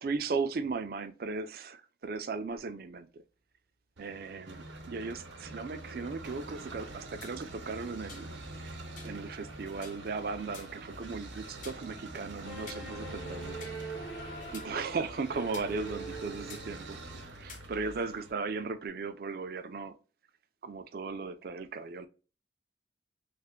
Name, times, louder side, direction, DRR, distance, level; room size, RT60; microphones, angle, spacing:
voice 1, 0.0-3.2 4.0-8.3 8.6-8.8 9.0-13.6 14.5-20.0 20.6-22.1, right 4 dB, 50° right, 0.4 m, -37 dB
sound 1, 4.0-18.3, right 2 dB, 80° right, 0.8 m, -45 dB
sound 2, 7.2-7.4 8.1-8.3 9.0-9.2 9.8-10.0 10.5-10.8 11.6-11.8 12.7-12.9 13.6-13.7 14.5-14.7 15.5-15.7 16.5-16.6 17.5-17.6, left 6 dB, 40° left, 0.5 m, -49 dB
sound 3, 12.4-17.1, right 2 dB, 75° left, 1.1 m, -43 dB
3.3 x 2.1 x 3.6 m
head